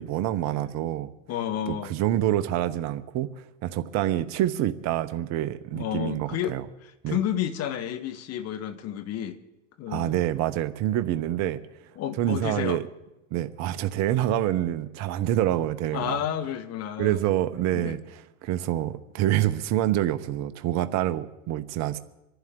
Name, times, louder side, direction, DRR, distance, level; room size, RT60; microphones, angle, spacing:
voice 1, 0.0-1.1 1.7-6.6 7.0-7.2 9.9-11.6 12.2-12.9 13.3-16.2 17.0-22.0, right 13 dB, 45° right, 0.9 m, -27 dB
voice 2, 1.3-1.9 5.7-6.6 6.8-9.4 9.8-10.2 12.0-12.8 15.9-17.2 17.7-18.0, left 10 dB, 40° left, 1.4 m, -31 dB
25.5 x 11.5 x 3.8 m
hypercardioid pair, 100°, 38 cm